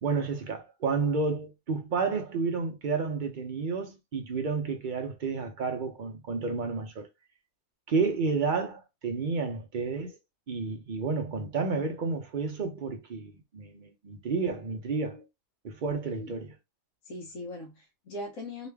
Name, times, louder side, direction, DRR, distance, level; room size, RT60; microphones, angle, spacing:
voice 1, 0.0-7.1 7.9-10.2 10.5-15.2 15.6-16.5, right 4 dB, 50° right, 0.6 m, -31 dB
voice 2, 17.0-18.7, left 1 dB, 70° left, 1.3 m, -40 dB
3.1 x 2.4 x 3.3 m
omnidirectional pair, 1.5 m